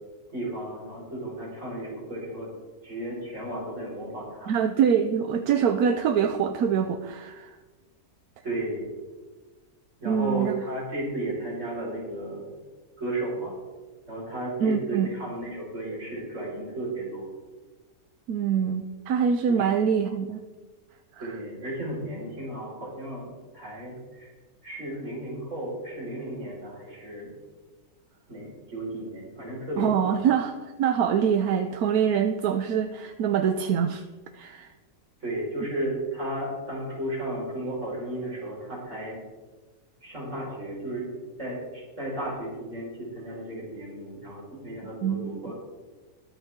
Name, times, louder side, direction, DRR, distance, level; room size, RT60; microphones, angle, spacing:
voice 1, 0.3-2.5 2.8-4.5 8.4-8.9 10.0-12.6 13.0-13.5 14.1-17.3 19.6-19.7 21.2-24.3 24.6-27.3 28.3-30.1 35.2-39.2 40.0-41.1 41.4-45.5, right 1 dB, 55° right, -5 dB, 5.3 m, -34 dB
voice 2, 4.5-7.6 10.1-10.5 14.6-15.1 18.3-20.4 21.1-21.3 29.8-34.0 34.3-34.7 45.0-45.4, right 7 dB, 85° right, 7 dB, 1.2 m, -24 dB
22.5 x 7.5 x 3.7 m, 1.2 s
omnidirectional pair, 1.5 m